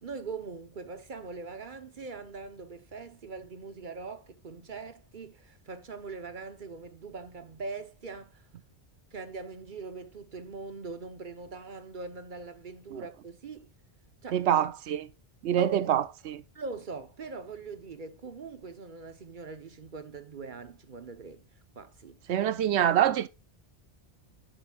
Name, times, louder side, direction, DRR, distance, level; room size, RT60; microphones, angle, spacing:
voice 1, 0.0-8.5 9.1-13.7 14.2-14.4 15.6-15.9 16.5-21.4 21.7-22.2, right 4 dB, 50° right, 1.2 m, -42 dB
voice 2, 14.3-15.1 15.4-16.4 22.3-23.3, right 10 dB, 85° right, 0.9 m, -25 dB
11.5 x 8.9 x 2.4 m
omnidirectional pair, 1.1 m